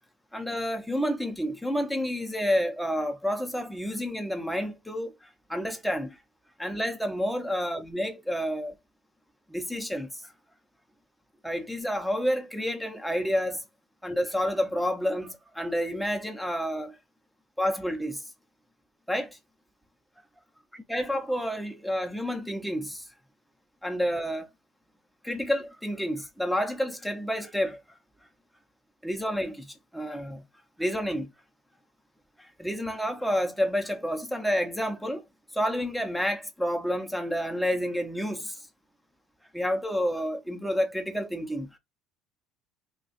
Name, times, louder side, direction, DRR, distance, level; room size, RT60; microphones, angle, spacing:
voice 1, 0.3-6.2 6.6-8.8 9.5-10.3 11.4-13.6 14.0-17.0 17.6-18.2 19.1-19.4 20.9-23.0 23.8-24.5 25.2-27.8 29.0-30.4 30.8-31.3 32.4-35.2 35.5-38.6 39.5-41.8, equal, ahead, 0.7 m, -29 dB
2.4 x 2.3 x 4.0 m
cardioid pair, 115°, 0 cm